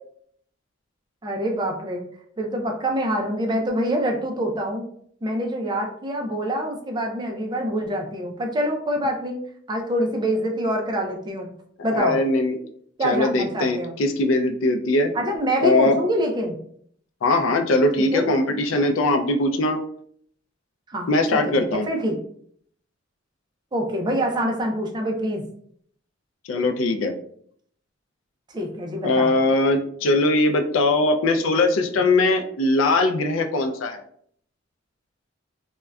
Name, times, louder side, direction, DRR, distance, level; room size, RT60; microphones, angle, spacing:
voice 1, 1.2-2.1 2.4-4.9 5.2-9.4 9.7-11.5 11.8-12.2 13.0-14.0 15.1-16.6 18.0-18.3 20.9-22.2 23.7-25.5 28.5-29.3, equal, 25° right, 2 dB, 0.4 m, -25 dB
voice 2, 11.9-12.6 13.0-15.1 15.6-16.0 17.2-19.8 21.1-21.9 26.4-27.1 29.0-34.0, left 2 dB, 90° left, 6 dB, 0.4 m, -21 dB
3.6 x 2.2 x 2.2 m, 0.63 s
head